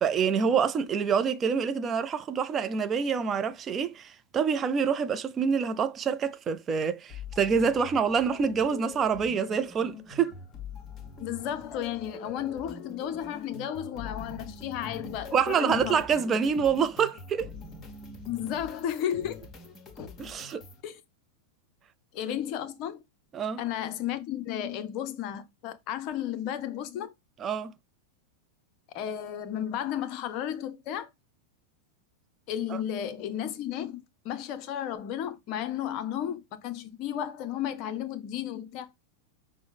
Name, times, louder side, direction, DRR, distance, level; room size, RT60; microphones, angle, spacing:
voice 1, 0.0-10.3 15.3-17.5 20.2-20.6 23.3-23.6 27.4-27.7 32.7-32.8, right 6 dB, 25° right, 0.4 m, -26 dB
sound 1, 7.1-20.8, left 4 dB, 25° left, 1.1 m, -44 dB
voice 2, 11.2-16.0 18.3-19.4 20.0-20.1 20.8-21.0 22.1-23.0 23.6-27.1 28.9-31.1 32.5-38.9, left 10 dB, 40° left, 0.5 m, -33 dB
6.0 x 2.0 x 3.5 m
figure-of-eight pair, 90°, 0 cm